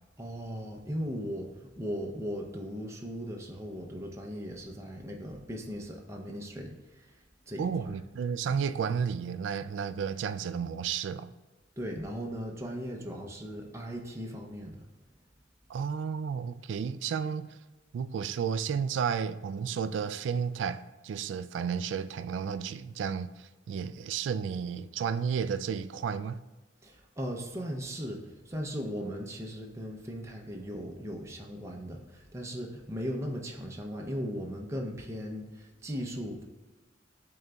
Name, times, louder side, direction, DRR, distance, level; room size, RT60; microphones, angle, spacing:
voice 1, 0.2-7.7 11.8-14.9 26.8-36.4, equal, 15° right, 0.6 m, -38 dB
voice 2, 7.6-11.3 15.7-17.6 17.9-26.4, right 6 dB, 70° right, 0.3 m, -32 dB
11.0 x 3.8 x 2.3 m
head